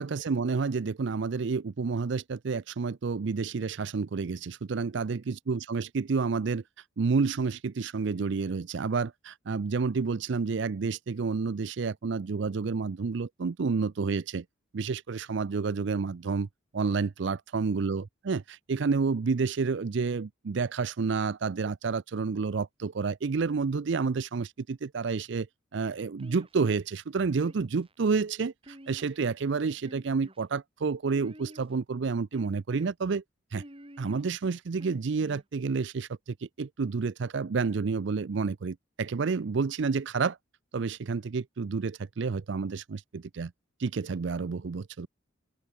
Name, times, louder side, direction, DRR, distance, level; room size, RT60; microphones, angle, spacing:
voice 1, 0.0-6.6 7.0-14.4 14.7-16.5 16.7-25.5 25.7-33.2 33.5-33.6 34.0-40.4 40.7-43.5 43.8-45.1, right 4 dB, 60° right, 0.5 m, -30 dB
sound 1, 26.2-26.8 27.4-27.9 28.6-29.4 29.8-30.4 31.1-31.8 32.3-32.9 33.6-34.2 34.8-35.4, right 1 dB, 25° right, 4.2 m, -49 dB
open air
head